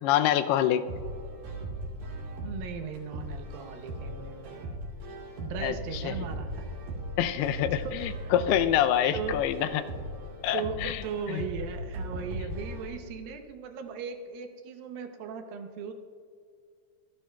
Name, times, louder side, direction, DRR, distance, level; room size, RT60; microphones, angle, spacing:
voice 1, 0.0-0.8 5.6-6.1 7.2-9.8 10.4-11.0 11.3-11.4, left 11 dB, 80° left, 10 dB, 2.4 m, -26 dB
sound 1, 0.9-12.9, right 1 dB, 55° right, 4.2 m, -38 dB
voice 2, 2.4-4.7 5.4-6.7 7.4-7.5 7.8-8.3 9.1-9.4 10.5-15.9, right 6 dB, 75° right, 6 dB, 2.2 m, -38 dB
26.5 x 11.0 x 2.3 m, 2.2 s
omnidirectional pair, 4.9 m